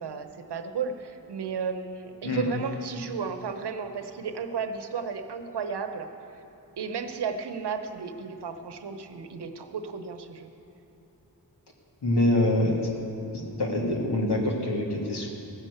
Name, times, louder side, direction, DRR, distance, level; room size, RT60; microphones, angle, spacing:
voice 1, 0.0-6.1 6.8-10.5, right 5 dB, 80° right, 7 dB, 0.9 m, -33 dB
voice 2, 12.0-12.9 13.3-15.3, left 1 dB, 75° left, -1 dB, 2.2 m, -25 dB
15.0 x 6.6 x 8.0 m, 2.9 s
cardioid pair, 50°, 40 cm